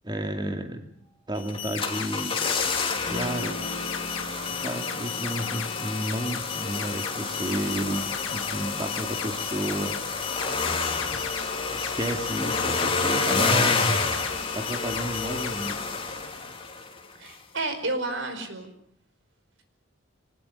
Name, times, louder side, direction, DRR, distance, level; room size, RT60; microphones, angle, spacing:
voice 1, 0.0-0.9 1.3-2.4 3.0-3.6 4.6-10.2 11.1-13.8 14.5-15.8, right 1 dB, 20° right, 5 dB, 2.4 m, -32 dB
sound 1, 1.3-15.7, left 9 dB, 80° left, 1.9 m, -36 dB
sound 2, 1.5-17.0 17.3-17.4, left 4 dB, 25° left, 3.2 m, -29 dB
Electric guitar / Strum, 3.1-8.2, equal, 90° right, 5.6 m, -42 dB
voice 2, 17.2-18.7, right 2 dB, 70° right, 8 dB, 5.1 m, -31 dB
25.0 x 20.0 x 8.2 m, 0.63 s
head